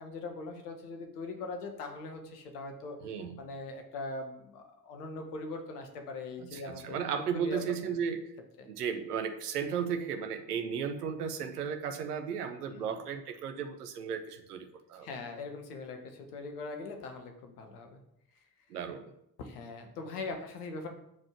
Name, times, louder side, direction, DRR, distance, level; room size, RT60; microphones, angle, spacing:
voice 1, 0.0-3.0 3.4-7.0 7.3-7.6 7.9-8.0 8.6-8.7 12.7-13.0 15.0-18.0 19.4-20.9, left 3 dB, 80° left, 4 dB, 1.7 m, -41 dB
voice 2, 3.0-3.4 6.4-8.3 8.7-15.1 18.7-19.1, right 7 dB, 85° right, 7 dB, 1.1 m, -35 dB
12.0 x 5.0 x 7.3 m, 0.78 s
figure-of-eight pair, 40°, 45 cm